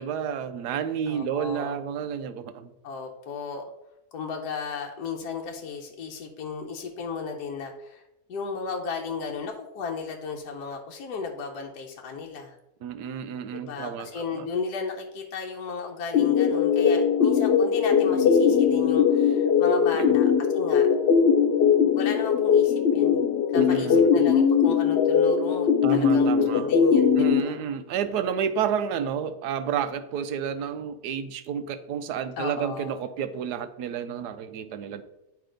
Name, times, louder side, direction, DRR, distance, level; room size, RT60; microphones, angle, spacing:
voice 1, 0.0-2.7 12.8-14.5 20.0-20.2 23.5-24.2 25.8-26.8 27.2-35.0, right 8 dB, 80° right, 11 dB, 1.2 m, -30 dB
voice 2, 1.1-1.8 2.8-3.6 4.1-8.0 8.3-12.5 13.5-20.9 21.9-23.2 23.5-27.6 32.4-32.9, left 5 dB, 75° left, 1 dB, 1.3 m, -34 dB
sound 1, 16.1-27.4, left 7 dB, 55° left, 0.7 m, -20 dB
9.3 x 3.3 x 5.0 m, 0.90 s
omnidirectional pair, 1.7 m